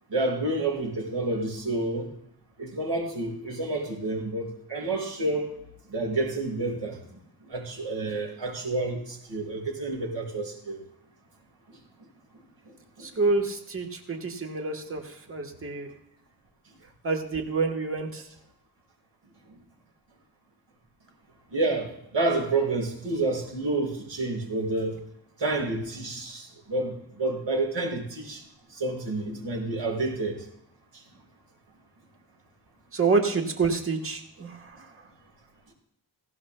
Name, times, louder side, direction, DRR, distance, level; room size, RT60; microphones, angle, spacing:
voice 1, 0.1-2.1 2.6-5.5 5.9-7.2 7.5-10.8 13.0-13.1 21.5-25.0 25.4-28.4 28.7-30.4, right 2 dB, 85° right, -2 dB, 5.4 m, -29 dB
voice 2, 13.0-15.9 17.0-18.2 32.9-34.7, right 4 dB, 30° right, 3 dB, 1.2 m, -27 dB
18.5 x 16.5 x 2.2 m, 0.76 s
wide cardioid pair, 175°, 42 cm